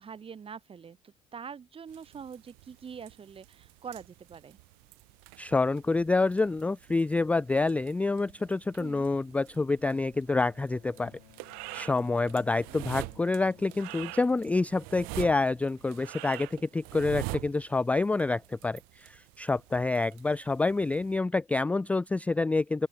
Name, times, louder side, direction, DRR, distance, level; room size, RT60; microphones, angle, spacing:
voice 1, 0.0-4.6 8.8-9.1 12.4-12.8, right 6 dB, 35° right, 7.8 m, -45 dB
sound 1, 1.9-21.2, right 33 dB, 65° right, 7.5 m, -45 dB
voice 2, 5.4-11.1 11.7-22.9, left 3 dB, 10° left, 0.3 m, -27 dB
Bowed string instrument, 10.4-15.4, left 30 dB, 70° left, 5.9 m, -59 dB
open air
hypercardioid pair, 65°, 17 cm